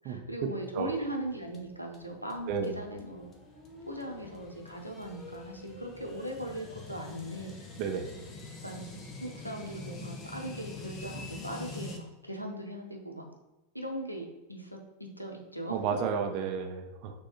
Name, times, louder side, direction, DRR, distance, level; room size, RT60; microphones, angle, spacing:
voice 1, 0.0-3.3 3.8-7.5 8.6-13.3 13.7-15.8, right 1 dB, 90° left, 2 dB, 0.6 m, -39 dB
sound 1, 1.1-12.0, left 3 dB, 25° left, 0.7 m, -46 dB
voice 2, 15.7-17.1, right 6 dB, 40° right, 4 dB, 0.5 m, -32 dB
6.3 x 2.3 x 2.9 m, 1.1 s
figure-of-eight pair, 90°, 0 cm